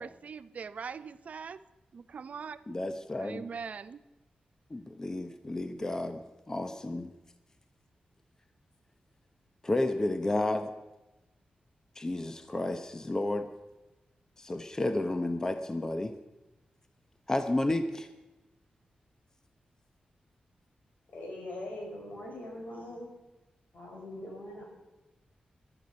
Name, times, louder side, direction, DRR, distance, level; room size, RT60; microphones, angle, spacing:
voice 1, 0.0-1.6 1.9-2.8 3.2-4.0, right 6 dB, 60° right, 14 dB, 0.6 m, -42 dB
voice 2, 2.7-3.4 4.7-7.1 9.6-10.7 12.0-13.5 14.4-16.1 17.3-18.1, left 2 dB, 20° left, 8 dB, 0.8 m, -31 dB
voice 3, 21.1-23.1 23.7-24.6, left 1 dB, 85° left, -1 dB, 6.0 m, -42 dB
18.0 x 12.0 x 5.3 m, 1.1 s
wide cardioid pair, 125°, 3 cm